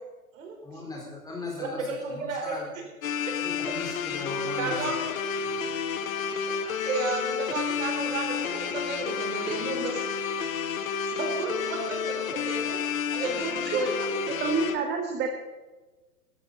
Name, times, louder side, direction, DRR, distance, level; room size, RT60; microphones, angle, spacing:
voice 1, 0.6-2.7 3.4-4.8 5.4-5.5, left 2 dB, 10° left, -2 dB, 4.3 m, -38 dB
voice 2, 1.6-2.6 4.6-5.0 6.5-10.0 10.4-10.5 11.0-12.8 13.1-14.1, right 3 dB, 55° right, 1 dB, 4.7 m, -32 dB
sound 1, 3.0-14.8, left 7 dB, 60° left, 1.4 m, -30 dB
voice 3, 14.4-15.3, right 5 dB, 25° right, 3 dB, 1.5 m, -28 dB
17.0 x 14.0 x 4.2 m, 1.2 s
figure-of-eight pair, 110°, 45 cm